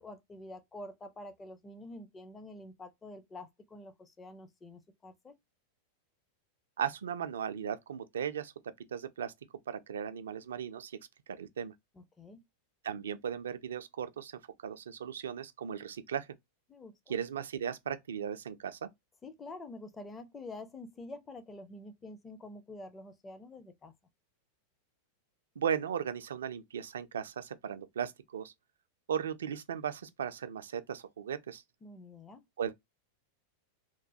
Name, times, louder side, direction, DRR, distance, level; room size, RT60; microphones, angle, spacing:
voice 1, 0.0-5.3 12.0-12.4 16.7-17.2 19.2-23.9 31.8-32.4, left 2 dB, 15° left, 0.5 m, -47 dB
voice 2, 6.8-8.5 8.9-9.3 9.7-11.0 11.3-11.7 12.8-16.3 17.1-18.9 25.6-28.5 29.1-31.6 32.6-32.7, right 8 dB, 65° right, 0.3 m, -37 dB
2.9 x 2.1 x 2.6 m
figure-of-eight pair, 90°, 0 cm